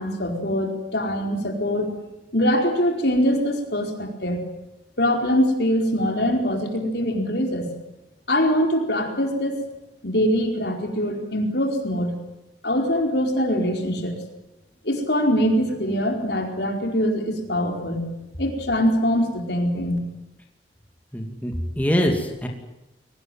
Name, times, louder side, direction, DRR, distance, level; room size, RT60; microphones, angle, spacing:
voice 1, 0.0-1.9 2.3-4.4 5.0-7.7 8.3-9.6 10.0-12.2 12.6-14.2 14.8-18.1 18.4-20.0, equal, 60° left, 3 dB, 4.7 m, -23 dB
voice 2, 21.1-22.5, equal, 10° left, 1 dB, 2.6 m, -24 dB
23.0 x 19.5 x 9.4 m, 0.96 s
head